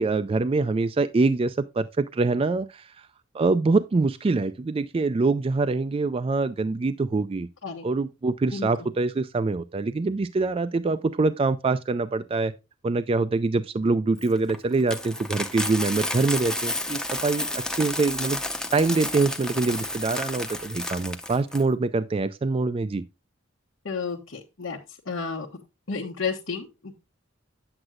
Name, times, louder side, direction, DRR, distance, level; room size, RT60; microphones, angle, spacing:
voice 1, 0.0-3.1 3.3-7.5 7.8-12.5 12.8-18.4 18.7-23.0, right 3 dB, 30° right, 0.3 m, -24 dB
voice 2, 8.5-8.9 23.8-24.8 25.1-25.5 25.9-27.0, left 5 dB, 80° left, 1.2 m, -32 dB
Coin (dropping), 14.2-21.6, left 1 dB, 5° left, 0.6 m, -31 dB
8.7 x 7.9 x 2.4 m
head